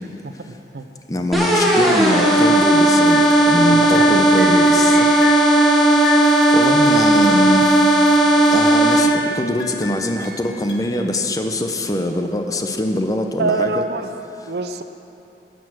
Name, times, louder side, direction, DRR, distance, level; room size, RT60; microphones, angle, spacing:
voice 1, 0.2-0.8 3.7-4.1 13.4-14.1 14.5-14.8, right 3 dB, 70° right, 9 dB, 0.6 m, -25 dB
voice 2, 1.1-5.0 6.5-7.8 8.5-13.8, left 1 dB, 20° left, 5 dB, 0.6 m, -23 dB
sound 1, 1.3-9.0, right 1 dB, ahead, 1.3 m, -14 dB
sound 2, 2.4-2.8 3.1-3.7 3.9-5.6 6.0-8.1 8.5-9.3 9.6-11.0, left 3 dB, 80° left, 1.3 m, -31 dB
10.5 x 9.3 x 6.3 m, 2.8 s
head